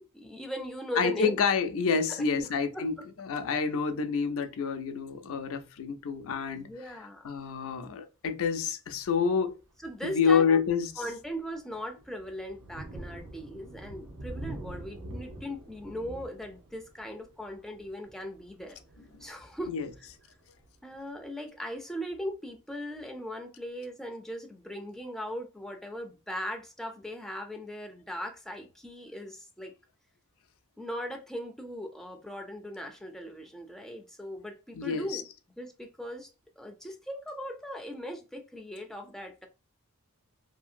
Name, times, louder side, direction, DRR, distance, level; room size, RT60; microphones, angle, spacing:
voice 1, 0.1-1.4 2.2-2.5 2.7-2.8 6.6-7.3 9.8-10.6 11.0-18.8 19.2-20.1 20.8-29.7 30.8-35.2 35.6-36.3 36.6-39.5, equal, ahead, 0.4 m, -39 dB
voice 2, 1.0-6.7 7.2-9.6 10.0-10.9 19.7-19.9 34.7-35.2, left 6 dB, 65° left, 0.5 m, -28 dB
Thunder, 9.0-9.2 9.8-9.9 10.4-20.9, right 1 dB, 70° right, 0.7 m, -46 dB
2.7 x 2.7 x 2.5 m
head